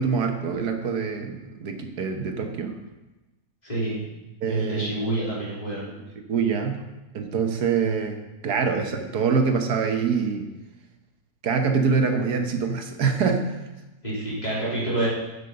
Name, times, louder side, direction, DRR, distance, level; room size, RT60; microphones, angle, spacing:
voice 1, 0.0-2.8 4.4-5.0 6.3-6.9 7.1-8.2 8.4-10.5 11.4-13.6, right 5 dB, 70° right, 5 dB, 1.6 m, -25 dB
voice 2, 3.6-4.0 4.5-5.8 14.0-15.1, right 2 dB, 25° left, -8 dB, 3.7 m, -27 dB
8.3 x 7.0 x 6.5 m, 1.1 s
omnidirectional pair, 1.8 m